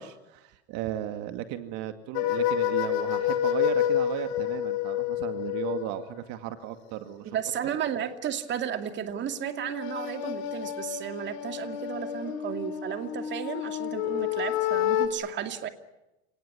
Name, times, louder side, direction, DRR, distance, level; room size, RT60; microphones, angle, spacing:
voice 1, 0.0-7.3, right 12 dB, 60° right, 8 dB, 2.3 m, -35 dB
sound 1, 2.1-6.0 9.4-15.1, left 11 dB, 65° left, 5.2 m, -29 dB
voice 2, 7.2-15.7, right 9 dB, 35° right, 7 dB, 2.5 m, -33 dB
30.0 x 19.0 x 9.7 m, 0.98 s
supercardioid pair, 125°, 33 cm